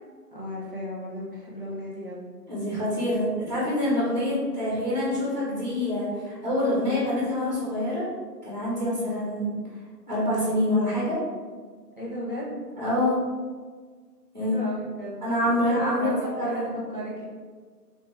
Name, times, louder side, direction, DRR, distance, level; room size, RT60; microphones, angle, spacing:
voice 1, 0.3-2.3 12.0-12.6 14.4-17.2, equal, 35° left, -7 dB, 0.6 m, -35 dB
voice 2, 2.5-8.1 8.4-9.6 10.1-11.2 12.8-13.2 14.3-14.6 15.2-16.6, left 1 dB, 25° right, -7 dB, 1.1 m, -26 dB
3.4 x 2.7 x 3.1 m, 1.5 s
figure-of-eight pair, 170°, 50 cm